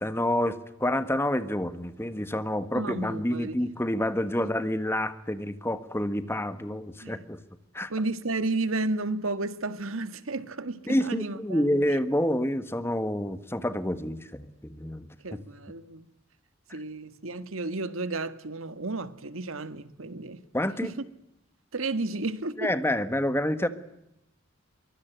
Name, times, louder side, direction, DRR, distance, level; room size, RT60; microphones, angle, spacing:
voice 1, 0.0-7.4 7.7-7.9 10.9-15.1 20.5-20.9 22.6-23.7, left 1 dB, 10° left, 1.5 m, -28 dB
voice 2, 2.7-3.5 7.0-7.2 7.9-12.0 15.2-16.1 16.7-20.4 20.8-21.0 21.7-22.7, right 2 dB, 80° right, 1.6 m, -32 dB
24.0 x 22.5 x 9.3 m
head